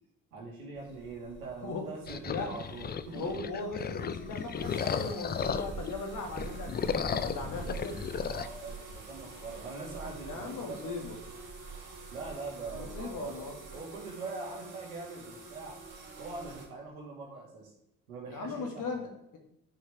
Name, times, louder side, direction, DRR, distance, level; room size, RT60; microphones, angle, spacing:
voice 1, 0.3-3.3 8.3-11.0 12.1-13.4 13.7-15.8 16.2-17.7 18.1-19.1, right 3 dB, 80° right, -2 dB, 2.3 m, -42 dB
sound 1, 0.7-16.7, right 4 dB, 50° right, 3.2 m, -46 dB
sound 2, 2.1-5.9 6.3-8.5, left 7 dB, 25° left, 0.5 m, -35 dB
voice 2, 2.3-2.6 3.1-8.0 10.3-11.2 12.7-13.6 18.3-19.4, left 3 dB, 45° left, 3 dB, 2.1 m, -38 dB
11.0 x 6.3 x 3.5 m, 0.81 s
figure-of-eight pair, 50°, 42 cm